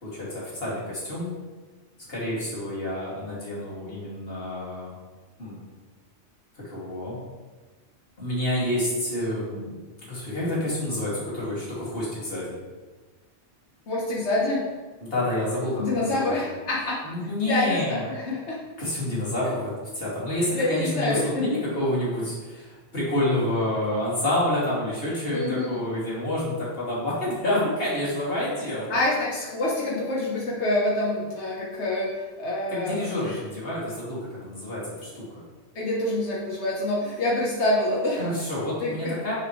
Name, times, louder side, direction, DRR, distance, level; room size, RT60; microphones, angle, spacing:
voice 1, 0.0-1.4 2.1-5.0 5.4-5.6 6.7-7.2 8.2-9.7 10.0-12.5 15.0-16.3 17.0-18.1 18.8-19.7 20.0-28.9 32.7-35.5 38.2-39.3, left 1 dB, 60° left, -7 dB, 2.8 m, -28 dB
voice 2, 13.9-14.7 15.8-17.0 17.5-18.6 19.4-19.5 20.5-21.5 25.3-25.7 28.9-33.4 35.7-38.2 38.8-39.1, left 2 dB, 80° left, -5 dB, 1.4 m, -26 dB
6.6 x 6.6 x 3.2 m, 1.3 s
omnidirectional pair, 1.1 m